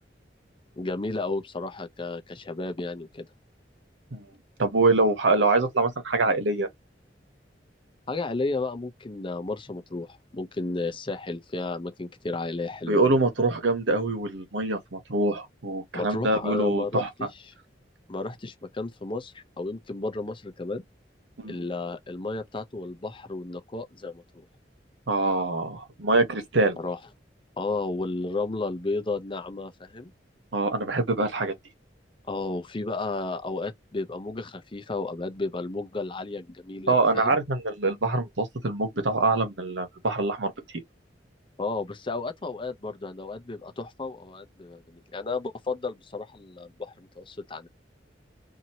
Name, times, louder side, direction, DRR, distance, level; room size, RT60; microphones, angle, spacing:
voice 1, 0.8-3.3 8.1-13.0 15.9-17.3 18.1-20.8 21.4-24.4 26.8-27.0 27.6-30.1 32.3-37.4 41.6-47.7, left 3 dB, 30° left, 0.6 m, -33 dB
voice 2, 4.6-6.7 12.8-17.1 21.4-21.6 25.1-26.8 30.5-31.5 36.9-40.5, right 2 dB, 85° right, 1.1 m, -24 dB
2.8 x 2.7 x 2.7 m
head